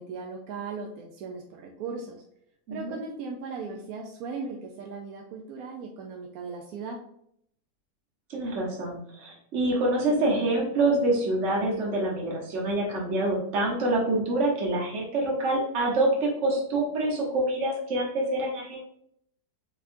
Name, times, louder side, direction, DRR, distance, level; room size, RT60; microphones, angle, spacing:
voice 1, 0.0-2.2 2.7-7.0, right 4 dB, 70° right, 1 dB, 1.0 m, -37 dB
voice 2, 2.7-3.0 8.3-18.8, right 2 dB, 45° right, -3 dB, 1.4 m, -26 dB
4.2 x 4.1 x 2.6 m, 0.70 s
omnidirectional pair, 1.8 m